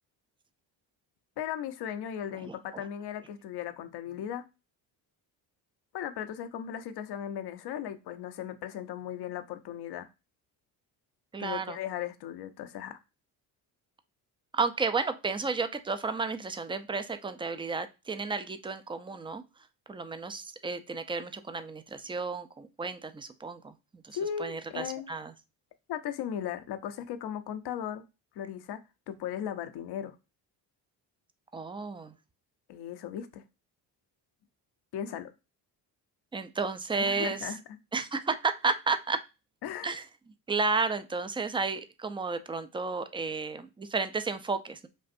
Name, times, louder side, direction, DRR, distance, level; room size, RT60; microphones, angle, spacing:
voice 1, 1.4-4.4 5.9-10.1 11.4-13.0 24.1-25.1 25.9-28.0 28.4-28.8 29.1-30.1 32.7-33.4 34.9-35.3 37.0-37.6 39.6-39.9, left 9 dB, 60° left, 0.7 m, -37 dB
voice 2, 2.4-2.8 11.3-11.8 14.5-19.4 19.9-25.3 31.5-32.1 36.3-37.5 37.9-39.2 39.8-40.0 40.5-44.9, right 4 dB, 10° right, 0.4 m, -32 dB
5.3 x 2.6 x 2.5 m
supercardioid pair, 65°, 44 cm